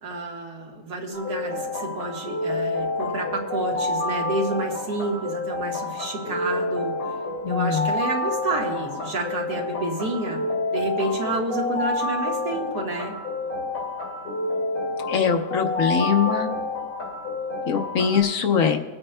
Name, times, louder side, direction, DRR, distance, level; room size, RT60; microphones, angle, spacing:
voice 1, 0.0-7.1 7.5-10.4 10.7-13.2, right 2 dB, 85° right, -1 dB, 2.1 m, -29 dB
sound 1, 1.1-18.2, left 2 dB, 85° left, 2.5 m, -29 dB
voice 2, 7.4-7.9 15.1-16.6 17.7-18.8, left 7 dB, 65° left, 5 dB, 1.1 m, -22 dB
24.5 x 8.7 x 2.2 m, 1.4 s
omnidirectional pair, 1.6 m